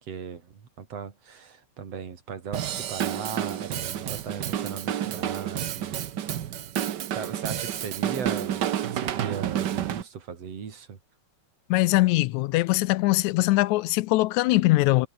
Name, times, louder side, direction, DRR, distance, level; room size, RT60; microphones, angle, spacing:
voice 1, 0.0-6.0 7.1-11.0, right 6 dB, 60° right, 3.6 m, -38 dB
Drum kit / Drum, 2.5-10.0, right 10 dB, 80° right, 0.9 m, -30 dB
voice 2, 11.7-15.1, left 19 dB, 85° left, 1.9 m, -22 dB
omnidirectional pair, 3.4 m